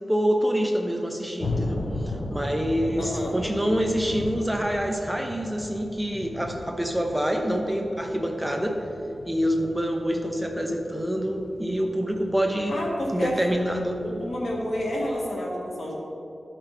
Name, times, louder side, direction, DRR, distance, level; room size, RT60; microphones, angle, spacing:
voice 1, 0.1-8.8 9.2-12.8 13.1-14.0, equal, 5° right, 2 dB, 0.9 m, -26 dB
sound 1, 1.4-15.1, left 2 dB, 55° left, 1.0 m, -37 dB
voice 2, 3.0-3.3 12.7-13.3 14.0-15.9, left 1 dB, 80° left, -4 dB, 2.1 m, -30 dB
14.5 x 5.8 x 3.6 m, 2.9 s
wide cardioid pair, 90°, 0 cm